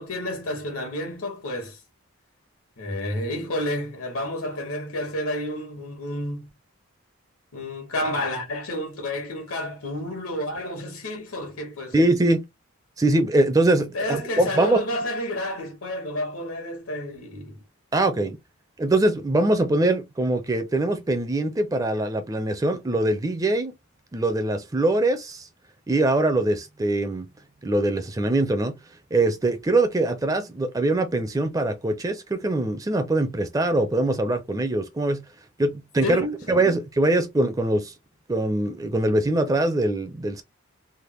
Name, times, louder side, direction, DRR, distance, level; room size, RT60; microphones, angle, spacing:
voice 1, 0.0-1.8 2.8-6.5 7.5-12.0 13.9-17.6 36.0-36.6, left 1 dB, 85° left, 1.4 m, -30 dB
voice 2, 11.9-12.4 13.0-14.8 17.9-18.4 18.8-23.7 24.1-25.5 25.9-27.3 27.6-28.7 29.1-35.2 35.6-37.9 38.3-40.4, right 2 dB, 15° right, 0.4 m, -23 dB
3.4 x 2.0 x 3.0 m
head